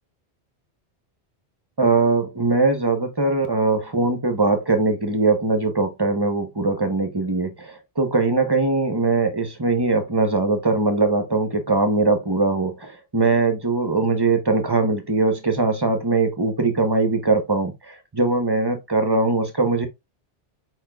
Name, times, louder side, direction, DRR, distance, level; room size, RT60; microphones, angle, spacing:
voice 1, 1.8-19.9, right 3 dB, 25° right, 0.7 m, -21 dB
4.9 x 4.3 x 2.2 m
omnidirectional pair, 1.2 m